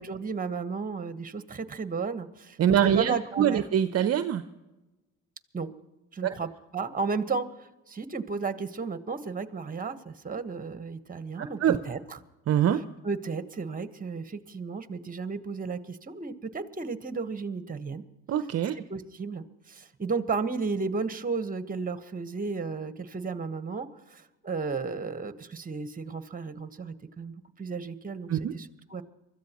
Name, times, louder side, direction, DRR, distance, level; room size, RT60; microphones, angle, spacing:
voice 1, 0.0-2.6 2.9-3.6 5.5-5.7 6.1-7.5 7.9-12.2 13.0-18.0 18.7-19.4 19.7-24.2 24.4-29.0, right 4 dB, 25° right, 11 dB, 1.3 m, -33 dB
voice 2, 2.6-4.4 6.2-6.3 11.4-11.8 12.5-12.8 18.3-18.8 28.3-28.5, right 9 dB, 45° right, 10 dB, 0.7 m, -24 dB
24.0 x 14.0 x 3.0 m, 1.0 s
supercardioid pair, 70°, 35 cm